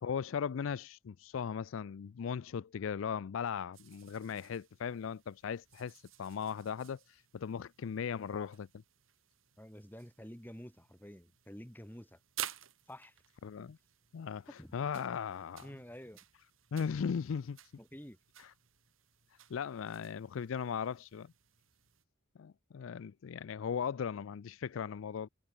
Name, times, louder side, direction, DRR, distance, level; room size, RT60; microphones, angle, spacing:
voice 1, 0.0-8.7 13.4-13.8 14.1-15.7 16.7-17.6 18.4-18.5 19.5-21.3 22.4-25.3, left 7 dB, 70° left, 0.4 m, -38 dB
sound 1, 3.7-22.0, right 11 dB, 75° right, 5.1 m, -53 dB
voice 2, 9.6-12.2 12.9-13.2 14.6-14.7 15.6-16.2 17.8-18.2, equal, 10° left, 4.5 m, -49 dB
head